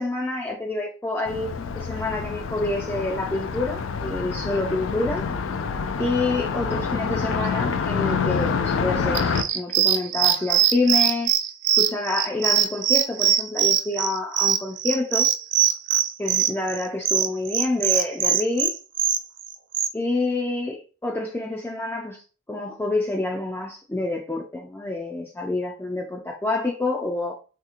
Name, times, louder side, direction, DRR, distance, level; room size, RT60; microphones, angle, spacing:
voice 1, 0.0-5.2 6.0-9.3 9.5-11.3 11.8-15.3 16.2-18.7 19.9-22.2 22.5-27.3, left 2 dB, 10° left, 0.3 m, -27 dB
Car passing by, 1.3-9.4, left 5 dB, 90° left, 0.3 m, -27 dB
sound 1, 9.1-19.9, right 9 dB, 65° right, 0.4 m, -21 dB
3.4 x 2.9 x 2.4 m
head